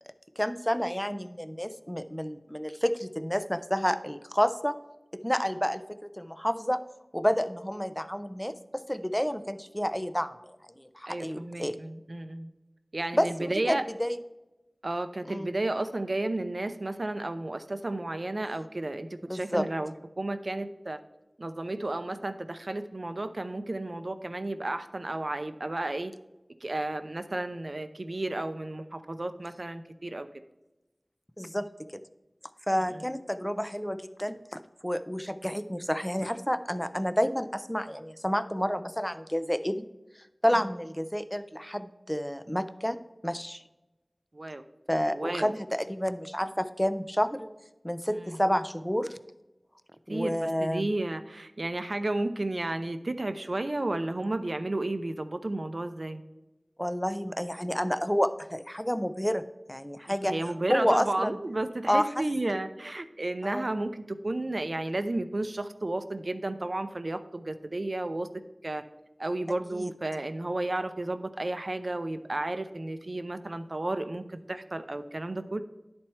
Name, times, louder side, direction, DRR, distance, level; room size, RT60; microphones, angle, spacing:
voice 1, 0.4-4.8 5.1-6.8 7.1-11.8 13.1-14.2 15.3-15.5 19.2-19.7 31.4-32.0 32.7-34.4 34.8-39.9 40.4-43.6 44.9-47.5 47.8-49.2 50.1-50.9 56.8-60.3 60.7-61.4 61.9-62.1 62.5-62.6 63.4-63.7 69.7-69.9, equal, 5° left, 11 dB, 0.5 m, -29 dB
voice 2, 11.1-12.5 12.9-13.8 14.8-21.0 21.4-26.1 26.6-30.3 32.7-33.1 40.5-40.7 44.3-44.6 45.1-45.5 48.1-48.4 50.1-56.2 60.1-68.3 68.6-68.8 69.2-75.6, right 2 dB, 65° right, 9 dB, 0.5 m, -32 dB
10.5 x 4.4 x 4.3 m, 1.0 s
wide cardioid pair, 50°, 0 cm